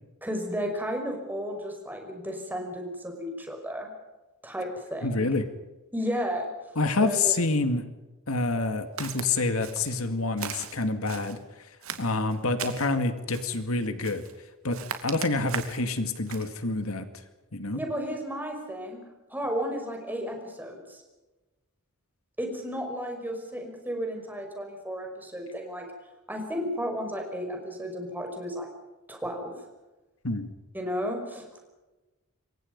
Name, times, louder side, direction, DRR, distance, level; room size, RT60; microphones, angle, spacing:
voice 1, 0.2-3.9 4.4-5.3 5.9-6.5 7.0-7.3 17.7-19.0 19.3-21.0 22.4-25.9 26.3-28.7 29.1-29.5 30.7-31.6, equal, 10° right, 3 dB, 5.6 m, -33 dB
voice 2, 5.0-5.4 6.8-7.8 8.3-11.4 12.0-14.2 14.6-17.1 17.5-17.8 30.2-30.5, left 3 dB, 70° left, 8 dB, 2.2 m, -27 dB
Walk footsteps, 9.0-9.3 9.6-10.0 10.4-11.4 11.8-12.9 13.3-13.6 14.0-14.4 14.7-15.8 16.3-16.5, right 7 dB, 70° right, 2.6 m, -38 dB
27.5 x 23.5 x 5.4 m, 1.1 s
head